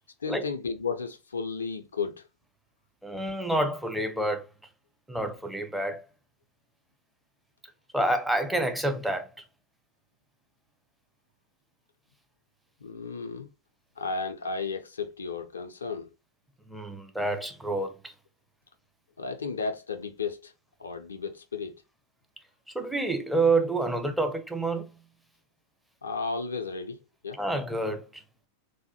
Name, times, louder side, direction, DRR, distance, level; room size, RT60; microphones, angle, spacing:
voice 1, 0.2-2.2 12.8-13.5 14.0-16.1 19.2-20.5 20.8-21.7 26.0-27.4, left 4 dB, 70° left, 0.3 m, -33 dB
voice 2, 3.0-4.5 5.1-6.0 7.9-9.3 16.7-18.1 22.7-24.9 27.3-28.2, right 2 dB, 5° right, 0.5 m, -28 dB
3.2 x 2.1 x 2.8 m
figure-of-eight pair, 90°, 0 cm